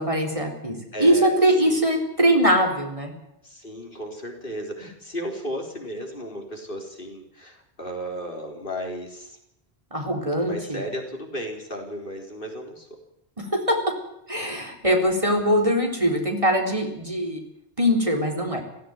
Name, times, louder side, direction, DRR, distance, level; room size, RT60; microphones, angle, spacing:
voice 1, 0.0-3.1 9.9-10.8 13.4-14.0 14.3-17.4 17.8-18.6, equal, 30° right, 2 dB, 4.1 m, -22 dB
voice 2, 0.9-1.3 1.6-1.9 3.4-9.4 10.4-13.0, equal, 55° left, 2 dB, 4.1 m, -34 dB
17.0 x 16.5 x 9.5 m, 0.79 s
omnidirectional pair, 1.1 m